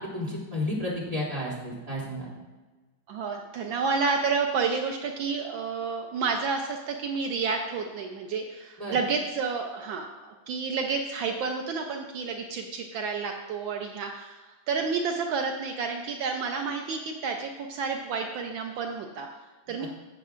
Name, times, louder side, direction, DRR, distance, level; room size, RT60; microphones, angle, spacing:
voice 1, 0.1-2.3 8.8-9.0, left 1 dB, 20° right, -6 dB, 2.8 m, -32 dB
voice 2, 3.1-19.3 19.7-19.9, right 5 dB, 75° right, 3 dB, 1.5 m, -30 dB
13.5 x 8.3 x 2.5 m, 1.2 s
omnidirectional pair, 2.2 m